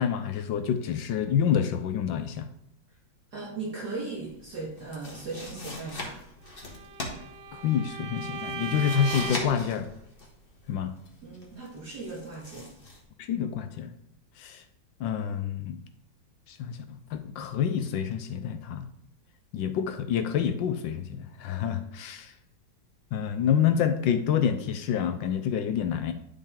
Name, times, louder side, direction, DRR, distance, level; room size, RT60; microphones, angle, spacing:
voice 1, 0.0-2.5 7.5-9.9 10.7-10.9 13.2-13.9 14.4-14.6 15.0-15.8 16.5-18.9 19.5-22.3 23.1-26.1, left 8 dB, 75° left, 9 dB, 1.3 m, -28 dB
voice 2, 3.3-6.2 11.2-12.7, right 3 dB, 55° right, -5 dB, 2.2 m, -37 dB
sound 1, 4.2-13.0, left 2 dB, 30° left, 1.5 m, -41 dB
Bowed string instrument, 6.6-9.6, right 5 dB, 75° right, 1.6 m, -37 dB
10.5 x 5.3 x 3.7 m, 0.77 s
omnidirectional pair, 2.2 m